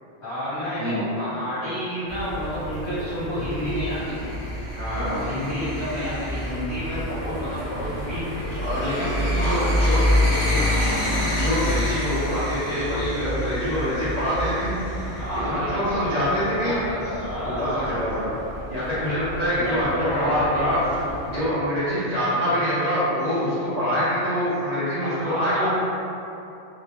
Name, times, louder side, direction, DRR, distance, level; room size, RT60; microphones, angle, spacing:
voice 1, 0.2-4.3 4.9-8.5 9.0-10.7 15.1-18.0 19.5-20.7 25.0-25.7, equal, 45° left, -14 dB, 1.7 m, -30 dB
sound 1, 2.1-21.4, left 1 dB, 85° left, 1.3 m, -28 dB
voice 2, 4.7-5.2 8.6-10.3 10.8-10.9 11.4-14.7 15.4-16.8 17.3-18.3 18.7-20.8 21.3-25.7, equal, 40° right, -12 dB, 0.7 m, -25 dB
4.0 x 2.3 x 2.9 m, 2.8 s
omnidirectional pair, 1.2 m